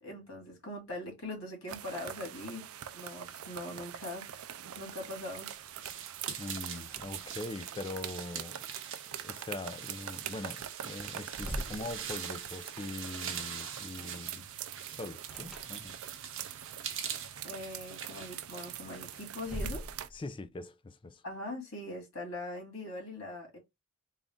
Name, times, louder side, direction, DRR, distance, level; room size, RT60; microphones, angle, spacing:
voice 1, 0.0-2.7 2.9-4.5 4.8-5.5 6.3-6.4 17.4-19.9 21.2-23.6, left 1 dB, 70° left, 2.2 m, -41 dB
sound 1, 1.7-20.1, right 10 dB, 80° right, 0.4 m, -44 dB
sound 2, 4.6-19.8, right 8 dB, 60° right, 0.8 m, -44 dB
voice 2, 6.4-8.6 9.2-14.5 14.9-16.0 20.1-21.2, left 2 dB, 25° left, 0.4 m, -42 dB
sound 3, 6.8-7.7 7.9-8.0 10.3-10.4 10.8-12.5 15.3-16.3 18.8-20.4, equal, ahead, 0.8 m, -43 dB
3.9 x 2.4 x 3.5 m
head